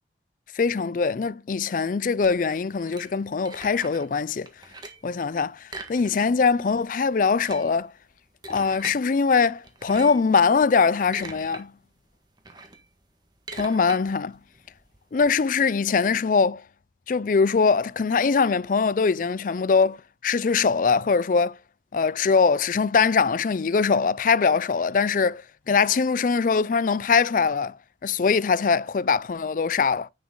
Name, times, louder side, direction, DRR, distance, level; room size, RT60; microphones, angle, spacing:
voice 1, 0.5-4.5 5.0-7.9 8.5-11.7 13.5-14.4 15.1-16.6 17.1-20.0 20.2-21.6 21.9-27.8 28.0-30.1, left 5 dB, 50° left, 0.4 m, -22 dB
sound 1, 2.2-4.1 4.5-5.1 5.6-6.5 6.8-6.9 7.2-9.0 9.6-10.3 10.8-11.6 12.0-15.3, right 3 dB, 25° right, 1.5 m, -42 dB
9.8 x 6.9 x 3.8 m
head